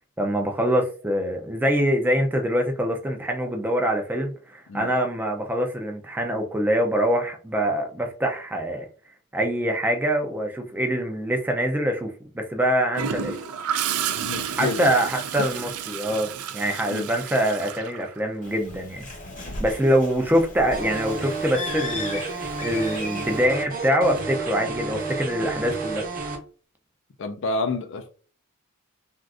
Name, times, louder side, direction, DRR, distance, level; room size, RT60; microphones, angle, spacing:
voice 1, 0.2-8.9 9.3-13.4 14.6-19.1 19.6-26.0, equal, 10° right, 0.4 m, -24 dB
Gurgling / Toilet flush, 12.9-18.7 20.7-20.9, right 8 dB, 80° right, 0.4 m, -31 dB
voice 2, 14.1-15.0 15.4-15.5 16.9-17.1 19.5-19.6 27.2-28.1, left 3 dB, 55° left, 0.4 m, -29 dB
Bird, 18.4-23.4, left 3 dB, 35° left, 0.9 m, -37 dB
sound 1, 20.7-26.4, right 4 dB, 40° right, 0.8 m, -31 dB
3.5 x 2.4 x 2.4 m
head